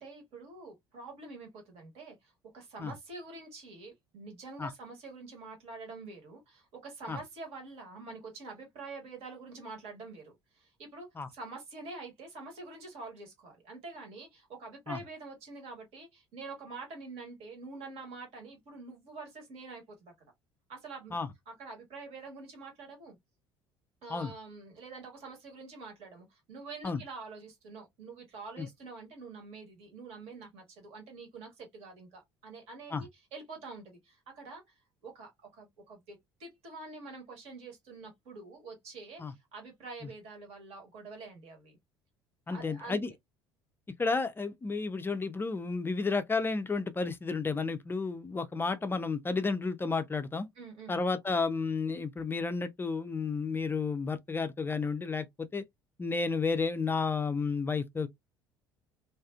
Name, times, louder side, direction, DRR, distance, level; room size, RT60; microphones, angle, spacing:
voice 1, 0.0-11.1 11.3-20.1 20.7-21.2 21.5-23.2 24.0-34.6 35.0-41.8 42.5-43.0 50.5-51.0, right 3 dB, 50° right, 1.2 m, -46 dB
voice 2, 42.5-43.1 44.0-50.5 50.9-55.6 56.0-58.1, left 4 dB, 15° left, 0.4 m, -32 dB
2.4 x 2.4 x 2.3 m
figure-of-eight pair, 55°, 13 cm